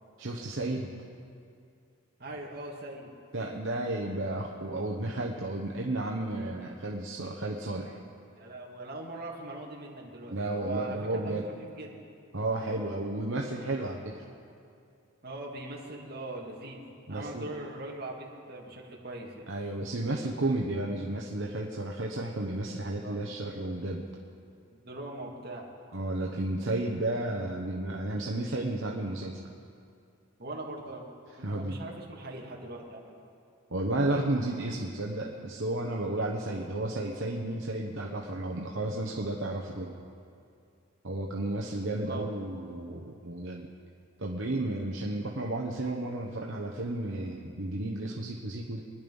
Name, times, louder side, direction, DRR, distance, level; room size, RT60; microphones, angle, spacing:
voice 1, 0.2-0.9 3.3-8.0 10.3-11.5 12.3-14.2 17.1-17.5 19.5-24.1 25.9-29.4 31.4-31.8 33.7-40.0 41.0-43.7 44.2-48.8, right 2 dB, 65° right, -1 dB, 1.1 m, -32 dB
voice 2, 2.2-3.1 8.4-11.9 15.2-16.8 17.1-19.5 23.0-23.2 24.7-25.7 30.4-31.0 31.4-33.2 42.1-42.3, right 2 dB, 45° right, -2 dB, 2.3 m, -41 dB
24.5 x 10.5 x 5.4 m, 2.5 s
head